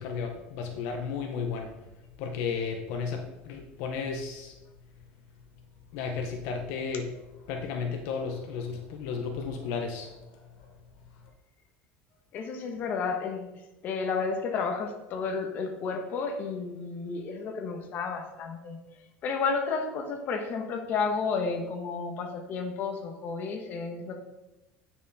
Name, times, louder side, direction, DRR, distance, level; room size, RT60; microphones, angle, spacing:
voice 1, 0.0-1.9 2.2-4.6 5.9-7.2 7.5-10.7, left 5 dB, 70° left, 3 dB, 1.1 m, -34 dB
voice 2, 12.3-13.5 13.8-18.8 19.2-24.1, left 4 dB, 45° left, 3 dB, 1.4 m, -31 dB
9.3 x 6.2 x 4.2 m, 0.99 s
cardioid pair, 150°, 5 cm